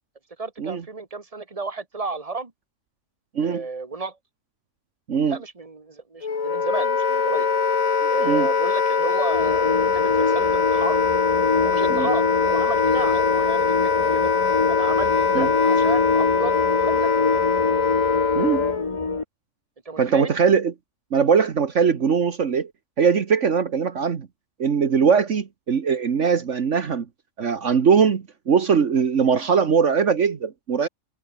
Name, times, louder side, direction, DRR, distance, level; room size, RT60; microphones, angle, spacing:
voice 1, 0.4-2.5 3.4-4.2 5.3-7.5 8.1-11.0 11.6-14.3 14.7-17.5 19.9-20.3, right 3 dB, 25° right, 2.2 m, -32 dB
Wind instrument woodwind instrument, 6.2-18.9, left 5 dB, 85° left, 2.3 m, -22 dB
sound 1, 9.3-19.2, left 3 dB, 25° left, 1.1 m, -25 dB
voice 2, 20.0-20.7 21.1-22.7 23.0-24.3 24.6-27.0 27.4-30.9, right 6 dB, 65° right, 1.7 m, -21 dB
omnidirectional pair, 1.4 m